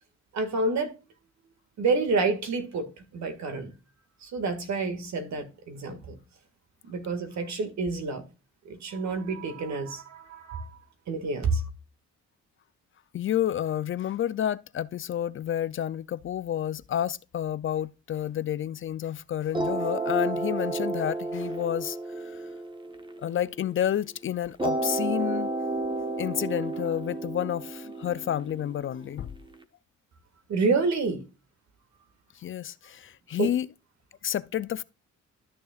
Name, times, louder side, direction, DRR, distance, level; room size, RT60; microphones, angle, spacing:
voice 1, 0.3-0.9 1.8-2.9 3.1-3.7 4.2-6.2 6.8-8.2 8.7-10.7 11.1-11.6 30.5-31.2 33.4-33.5, right 3 dB, 65° right, 1.9 m, -28 dB
voice 2, 13.1-22.3 23.2-25.5 26.2-29.3 32.4-33.7 34.2-34.8, left 10 dB, 45° left, 0.4 m, -30 dB
sound 1, 19.5-23.9 24.6-29.5, right 2 dB, 15° right, 1.1 m, -32 dB
12.5 x 6.7 x 2.4 m
cardioid pair, 90°, 30 cm